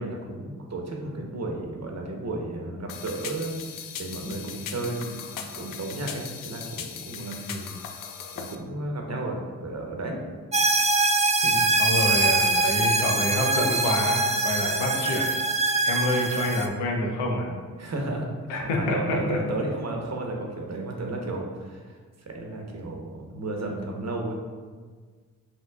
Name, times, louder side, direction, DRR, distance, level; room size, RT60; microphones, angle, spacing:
voice 1, 0.0-7.4 8.4-10.2 11.4-11.6 16.1-16.2 17.8-24.4, right 2 dB, 40° right, 0 dB, 1.0 m, -33 dB
sound 1, 2.9-8.6, left 7 dB, 55° left, 0.5 m, -39 dB
sound 2, 10.5-16.7, right 2 dB, 15° right, 0.4 m, -23 dB
voice 2, 11.8-15.3 15.8-17.5 18.5-19.4, left 1 dB, 90° left, 0 dB, 0.7 m, -27 dB
5.6 x 2.9 x 2.3 m, 1.5 s
supercardioid pair, 40°, 42 cm